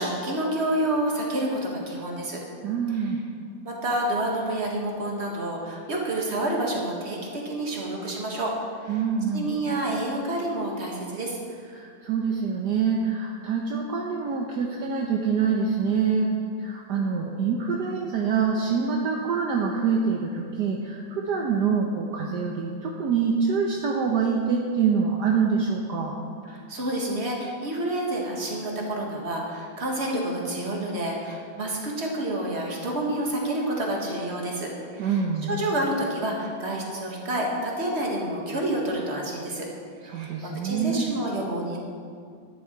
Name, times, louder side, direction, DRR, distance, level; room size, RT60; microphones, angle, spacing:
voice 1, 0.0-2.4 3.6-8.5 8.8-9.0 9.3-11.4 26.5-39.7 40.1-40.3 40.6-41.8, right 1 dB, 35° right, -1 dB, 2.0 m, -29 dB
voice 2, 2.6-3.2 8.9-9.5 11.7-16.3 16.6-26.2 35.0-35.5 40.0-41.1, right 5 dB, 65° right, 0 dB, 1.4 m, -25 dB
11.5 x 11.0 x 4.6 m, 2.2 s
omnidirectional pair, 2.0 m